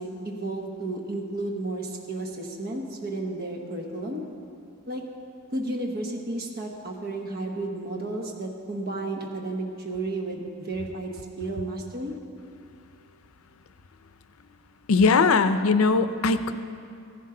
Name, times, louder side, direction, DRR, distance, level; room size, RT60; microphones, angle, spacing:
voice 1, 0.0-4.2 4.9-5.0 5.5-12.1, right 2 dB, 45° right, 2 dB, 1.0 m, -32 dB
voice 2, 14.9-16.5, left 4 dB, 80° left, 11 dB, 0.5 m, -20 dB
15.5 x 11.0 x 3.8 m, 2.5 s
head